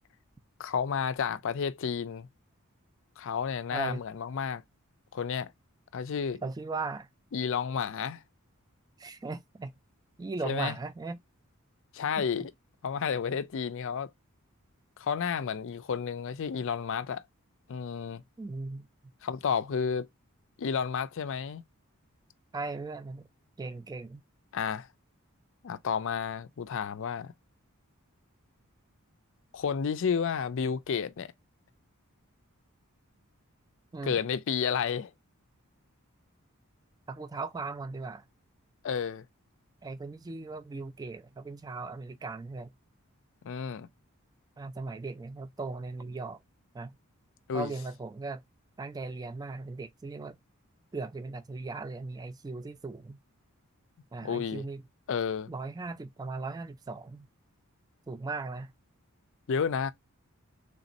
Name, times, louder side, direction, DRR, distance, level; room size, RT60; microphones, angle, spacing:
voice 1, 0.6-2.3 3.2-4.6 5.1-5.5 5.9-6.4 7.3-8.2 10.4-10.8 11.9-12.5 12.8-14.1 15.0-17.2 17.7-18.2 19.2-20.1 20.6-21.6 24.5-24.9 25.6-27.3 29.5-31.3 34.0-35.1 38.8-39.2 43.4-43.9 47.5-47.7 54.2-54.6 55.1-55.5 59.5-59.9, left 6 dB, 60° left, 0.4 m, -31 dB
voice 2, 3.7-4.0 6.4-7.1 9.0-9.7 10.2-11.2 12.2-12.3 18.4-18.9 22.5-23.3 23.6-24.2 33.9-34.2 37.1-38.2 39.8-42.7 44.6-46.4 46.7-47.0 47.5-48.4 48.8-50.4 50.9-53.2 54.1-54.8 55.5-57.3 58.1-58.7, right 3 dB, 20° right, 0.3 m, -38 dB
3.5 x 2.6 x 4.0 m
head